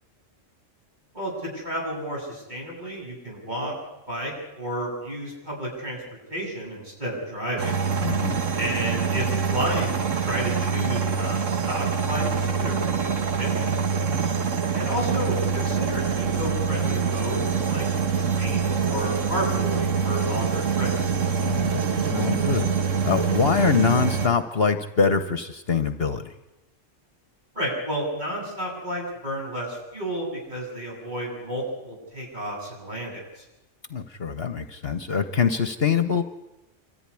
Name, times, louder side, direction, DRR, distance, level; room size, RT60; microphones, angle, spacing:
voice 1, 1.1-3.7 4.1-6.0 6.3-7.8 8.6-13.9 14.7-17.8 18.2-21.1 27.5-33.4, equal, 35° right, -3 dB, 8.2 m, -32 dB
sound 1, 7.6-24.3, right 6 dB, 85° right, 1.6 m, -25 dB
voice 2, 8.0-8.4 14.1-14.5 21.4-26.3 33.9-36.2, left 5 dB, 55° left, 9 dB, 1.3 m, -24 dB
26.0 x 14.0 x 9.9 m, 0.96 s
omnidirectional pair, 1.3 m